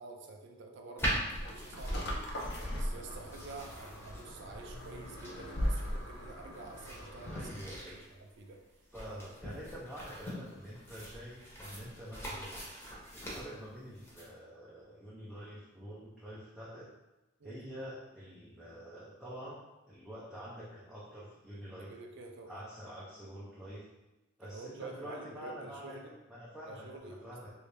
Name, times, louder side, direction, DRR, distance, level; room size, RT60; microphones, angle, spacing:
voice 1, 0.0-7.5 7.9-8.6 17.4-17.6 21.8-22.6 24.4-26.1 26.6-27.5, right 3 dB, 60° right, 2 dB, 0.5 m, -49 dB
sound 1, 1.0-14.2, equal, 10° left, 0.9 m, -42 dB
sound 2, 1.3-7.7, equal, 60° left, 0.6 m, -39 dB
voice 2, 7.3-8.1 8.9-12.5 13.1-16.9 17.4-19.6 19.9-21.9 22.5-23.8 24.4-27.5, equal, 5° right, -8 dB, 0.5 m, -47 dB
3.1 x 2.7 x 3.3 m, 1.1 s
head